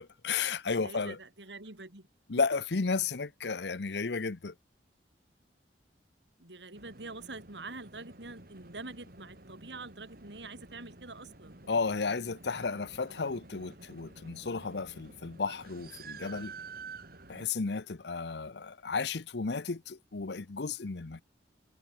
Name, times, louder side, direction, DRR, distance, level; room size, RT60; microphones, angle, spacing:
voice 1, 0.0-1.2 2.3-4.5 11.7-16.5 17.3-21.2, left 4 dB, 70° left, 0.8 m, -33 dB
voice 2, 0.8-2.1 6.4-11.6 12.5-12.8, right 3 dB, 80° right, 4.3 m, -46 dB
sound 1, 6.7-17.5, right 3 dB, 55° right, 3.7 m, -50 dB
head